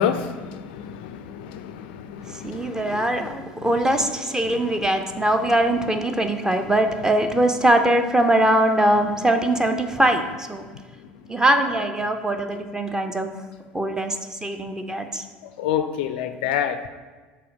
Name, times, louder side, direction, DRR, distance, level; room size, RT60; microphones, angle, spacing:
voice 1, 0.0-3.3 3.6-3.7 4.0-4.1 4.5-4.7 11.0-11.3 15.6-16.9, left 9 dB, 60° left, 10 dB, 0.4 m, -29 dB
voice 2, 2.3-10.7 11.3-13.3 13.7-15.3 15.7-15.9, right 1 dB, 10° right, 7 dB, 0.6 m, -22 dB
5.5 x 4.2 x 5.3 m, 1.3 s
figure-of-eight pair, 65°, 6 cm